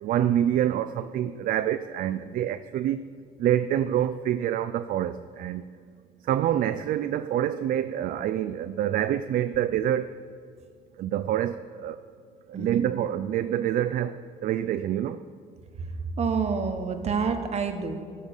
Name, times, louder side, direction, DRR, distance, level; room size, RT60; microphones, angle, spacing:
voice 1, 0.0-3.1 3.4-5.6 6.3-10.1 11.0-12.0 12.6-14.1 14.4-15.2, right 11 dB, 55° right, 11 dB, 0.4 m, -26 dB
voice 2, 12.5-12.8 15.8-15.9 16.2-18.0, right 5 dB, 40° right, 6 dB, 1.1 m, -28 dB
15.5 x 5.4 x 6.4 m, 2.1 s
cardioid pair, 110°, 17 cm